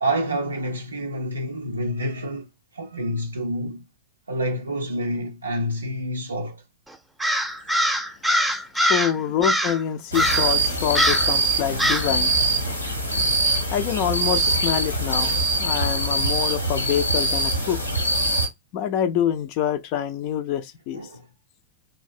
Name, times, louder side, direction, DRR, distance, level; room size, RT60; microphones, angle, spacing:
voice 1, 0.0-3.9 4.3-6.6 9.1-9.2 20.9-21.3, equal, 75° right, 0.4 m, -28 dB
Crow, 7.2-9.1 9.4-9.8 10.1-10.5 10.9-11.3 11.8-12.1, equal, 5° right, 0.6 m, -22 dB
voice 2, 8.9-12.3 13.7-17.8 18.7-21.1, left 9 dB, 45° left, 0.4 m, -26 dB
sound 1, 10.1-18.5, right 2 dB, 85° left, 1.0 m, -23 dB
3.2 x 2.6 x 2.3 m
figure-of-eight pair, 90°, 0 cm